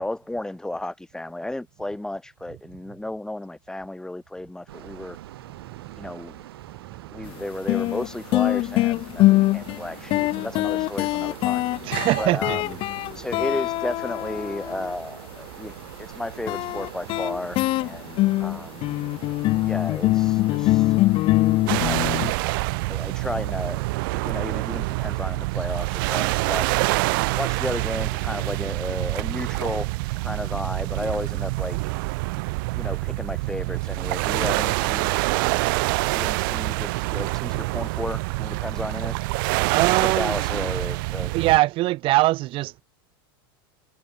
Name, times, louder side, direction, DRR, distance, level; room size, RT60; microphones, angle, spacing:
voice 1, 0.0-5.2 6.0-6.4 7.1-11.7 12.2-12.8 13.1-19.1 19.6-21.0 21.8-22.1 22.9-23.8 24.1-26.8 27.3-29.9 30.2-31.8 32.7-35.1 36.1-39.2 40.0-41.3, left 1 dB, 5° left, 4.8 m, -33 dB
sound 1, 4.7-24.3, right 14 dB, 80° right, 3.5 m, -43 dB
voice 2, 5.6-6.1 6.7-7.3 11.8-12.6 13.2-13.3 39.7-40.3 41.3-42.8, right 18 dB, 45° right, 1.1 m, -23 dB
sound 2, 7.2-7.3 7.7-14.9 16.5-22.3, left 18 dB, 45° left, 1.0 m, -23 dB
sound 3, 21.7-41.6, right 25 dB, 65° right, 0.4 m, -26 dB
supercardioid pair, 120°, 13 cm